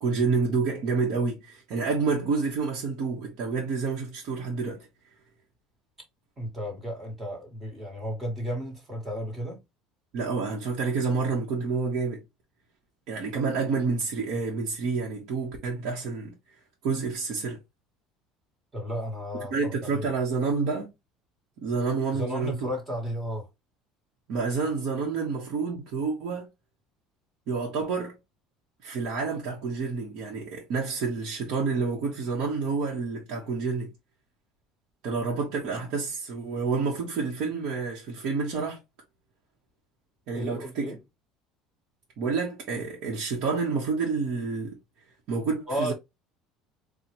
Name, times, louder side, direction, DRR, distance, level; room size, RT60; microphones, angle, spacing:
voice 1, 0.0-4.9 10.1-12.2 13.1-16.3 16.8-17.6 19.5-20.9 21.6-22.7 24.3-26.5 27.5-28.2 28.8-33.9 35.0-38.8 40.3-40.9 42.2-44.8 45.3-45.9, right 4 dB, 55° right, 1.2 m, -29 dB
voice 2, 6.4-9.6 18.7-20.1 22.1-23.5 40.3-41.0 45.7-45.9, equal, 20° right, 1.7 m, -33 dB
4.3 x 2.4 x 3.1 m
cardioid pair, 155°, 0 cm